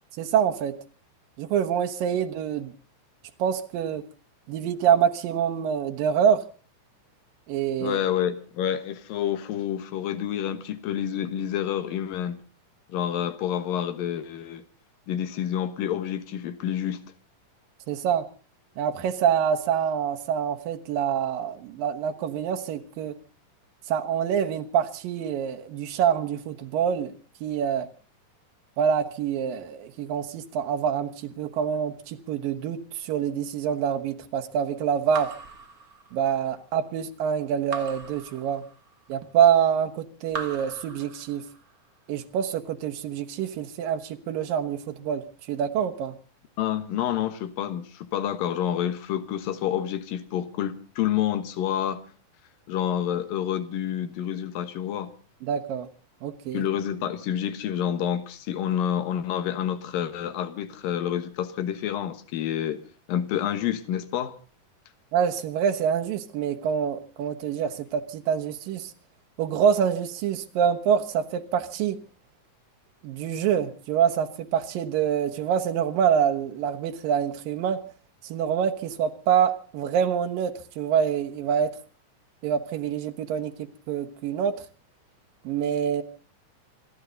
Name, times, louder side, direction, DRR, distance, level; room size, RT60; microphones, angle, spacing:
voice 1, 0.2-0.7 1.4-2.7 3.4-4.0 4.5-6.4 7.5-8.0 17.9-18.2 18.8-23.1 23.9-27.1 27.4-27.9 28.8-35.3 36.1-38.6 39.1-41.4 42.1-45.2 45.5-46.1 55.4-55.9 56.2-56.6 65.1-68.9 69.4-72.0 73.0-77.8 78.3-81.7 82.4-83.5 83.9-84.6 85.4-86.0, right 8 dB, 90° right, 3.0 m, -26 dB
voice 2, 7.8-12.4 12.9-14.6 15.1-17.0 46.6-52.1 52.7-55.1 56.5-62.8 63.1-64.3, left 10 dB, 90° left, 3.0 m, -28 dB
Raindrop / Drip, 35.1-36.5 37.7-39.1 40.3-41.7, right 4 dB, 40° right, 1.5 m, -39 dB
27.0 x 13.0 x 4.0 m
omnidirectional pair, 3.9 m